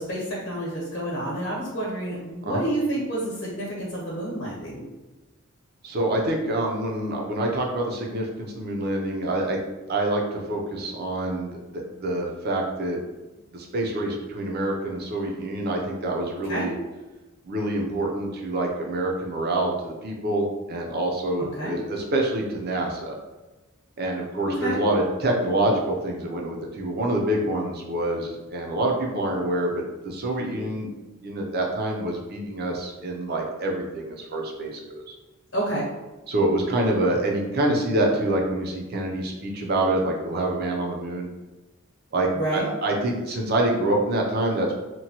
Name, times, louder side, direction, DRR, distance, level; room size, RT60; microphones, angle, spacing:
voice 1, 0.0-4.8 16.5-16.7 21.6-21.8 24.5-24.8 35.5-35.8 42.3-42.7, right 1 dB, 55° left, -5 dB, 0.8 m, -29 dB
voice 2, 5.8-9.6 9.9-13.0 13.5-16.7 17.4-23.1 24.0-30.9 31.2-35.1 36.3-41.3 42.1-44.7, right 1 dB, 50° right, 0 dB, 0.5 m, -26 dB
2.9 x 2.2 x 2.8 m, 1.1 s
head